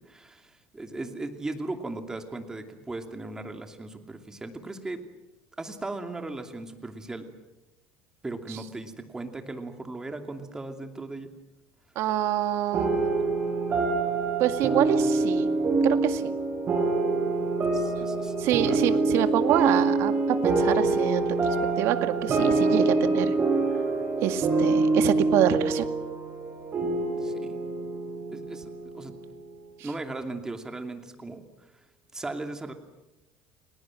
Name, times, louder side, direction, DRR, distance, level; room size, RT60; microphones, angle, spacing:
voice 1, 0.1-5.0 5.6-7.3 8.2-11.3 17.7-18.3 18.6-18.9 27.2-27.3 28.3-28.7 28.9-29.2 29.8-31.4 31.7-31.8 32.1-32.7, right 2 dB, 10° right, 5 dB, 2.7 m, -37 dB
voice 2, 12.0-13.1 14.4-15.5 15.8-16.3 18.4-21.3 21.8-23.3 24.2-25.8, right 12 dB, 60° right, 9 dB, 2.1 m, -26 dB
sound 1, 12.7-29.5, right 3 dB, 30° right, 6.7 m, -25 dB
30.0 x 20.5 x 7.7 m, 0.99 s
cardioid pair, 145°, 5 cm